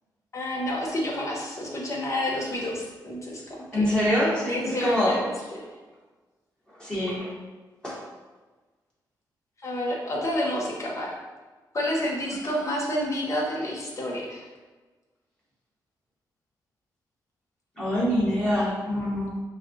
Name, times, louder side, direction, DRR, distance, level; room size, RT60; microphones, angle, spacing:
voice 1, 0.3-3.8 4.5-5.6 9.6-11.1 11.7-14.5, left 1 dB, 40° left, -2 dB, 1.1 m, -29 dB
voice 2, 3.7-5.2 6.8-7.3 7.8-8.0 17.8-19.3, equal, 10° left, -9 dB, 1.5 m, -25 dB
5.6 x 2.4 x 2.9 m, 1.3 s
cardioid pair, 85°, 8 cm